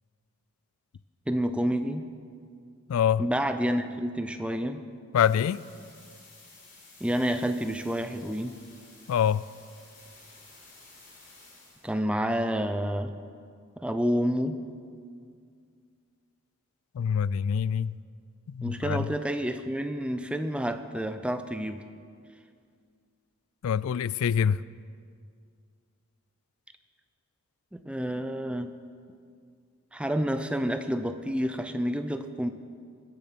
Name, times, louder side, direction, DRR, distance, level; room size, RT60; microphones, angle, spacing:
voice 1, 1.3-2.0 3.2-4.8 7.0-8.6 11.8-13.1 13.8-14.6 18.6-21.8 27.7-28.7 29.9-32.5, equal, 5° right, 0.5 m, -29 dB
voice 2, 2.9-3.2 5.1-5.6 9.1-9.4 16.9-18.0 18.5-19.1 23.6-24.6, left 8 dB, 75° left, 0.3 m, -25 dB
sound 1, 5.1-11.9, left 3 dB, 35° left, 3.8 m, -53 dB
20.5 x 7.2 x 5.8 m
head